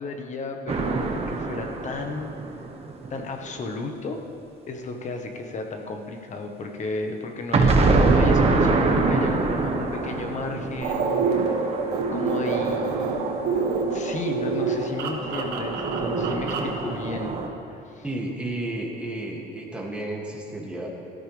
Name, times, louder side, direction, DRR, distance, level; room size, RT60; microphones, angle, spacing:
voice 1, 0.0-2.3 3.1-4.2 4.7-11.7 12.1-13.3 13.9-17.4 17.7-18.0, left 3 dB, 45° left, 4 dB, 1.4 m, -34 dB
sound 1, 0.7-3.5 7.5-13.8 15.0-17.5, right 3 dB, 35° right, 1.3 m, -25 dB
sound 2, 10.8-16.8, right 4 dB, 80° right, 1.7 m, -26 dB
voice 2, 18.0-20.9, right 1 dB, 5° right, -3 dB, 2.5 m, -32 dB
17.5 x 13.0 x 3.5 m, 2.9 s
cardioid pair, 110°, 17 cm